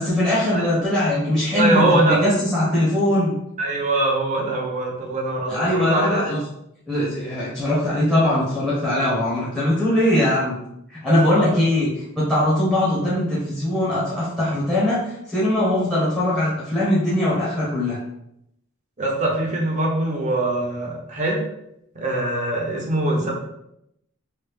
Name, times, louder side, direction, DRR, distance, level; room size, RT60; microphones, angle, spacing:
voice 1, 0.0-3.3 5.5-6.4 6.9-10.6 10.9-18.0, left 1 dB, 5° left, -10 dB, 0.9 m, -21 dB
voice 2, 1.5-2.2 3.6-6.2 11.1-11.6 19.0-21.4 21.9-23.3, right 2 dB, 35° right, -2 dB, 0.7 m, -22 dB
3.2 x 2.4 x 3.4 m, 0.78 s
head